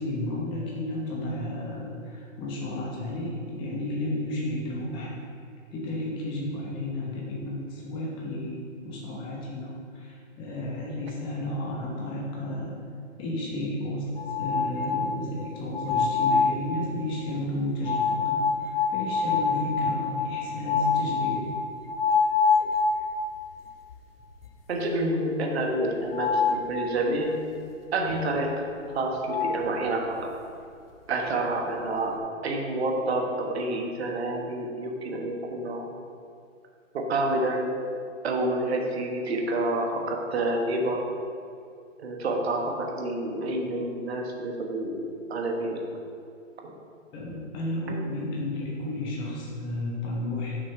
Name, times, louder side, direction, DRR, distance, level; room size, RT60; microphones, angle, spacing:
voice 1, 0.0-5.2 5.7-12.8 13.2-14.1 14.4-21.5 47.1-50.6, left 1 dB, 10° left, -3 dB, 0.9 m, -32 dB
sound 1, 14.2-15.3 15.7-16.7 17.9-23.5 23.9-24.0 24.4-24.5 26.1-26.7 28.9-29.0 29.3-29.7, left 5 dB, 45° left, 0.6 m, -26 dB
voice 2, 24.7-27.4 27.9-28.7 28.9-30.3 31.1-32.1 32.4-35.9 36.9-37.7 38.2-41.0 42.0-45.8 46.6-46.8, right 2 dB, 50° right, 1 dB, 1.3 m, -28 dB
6.3 x 4.1 x 5.7 m, 2.4 s
hypercardioid pair, 145°, 40 cm